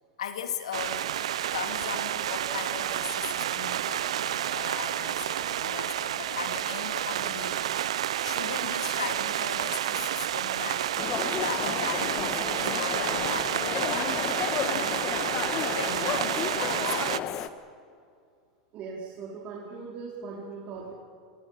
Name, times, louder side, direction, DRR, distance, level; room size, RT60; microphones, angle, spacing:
voice 1, 0.2-7.9 8.2-14.1 15.7-17.5, left 8 dB, 80° left, 7 dB, 2.2 m, -38 dB
sound 1, 0.7-17.2, right 11 dB, 75° right, 0.5 m, -30 dB
sound 2, 11.0-17.5, left 10 dB, 45° left, 1.5 m, -32 dB
voice 2, 18.7-20.9, right 4 dB, 45° right, -2 dB, 4.1 m, -39 dB
26.0 x 25.0 x 5.8 m, 2.4 s
hypercardioid pair, 95°, 3 cm